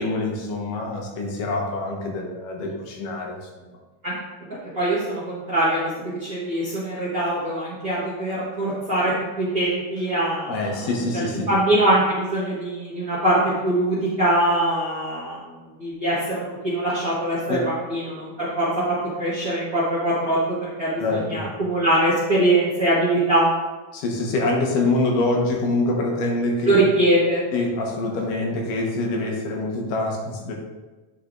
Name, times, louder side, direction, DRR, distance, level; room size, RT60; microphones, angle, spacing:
voice 1, 0.0-3.7 10.5-11.5 17.5-17.7 21.0-21.5 23.9-26.8 27.5-30.5, left 2 dB, 80° left, 0 dB, 2.7 m, -25 dB
voice 2, 4.7-9.1 9.4-10.6 11.1-15.4 15.8-18.7 19.2-23.5 26.7-27.4, right 1 dB, 40° right, -8 dB, 1.2 m, -22 dB
9.8 x 5.2 x 2.5 m, 1.2 s
omnidirectional pair, 3.8 m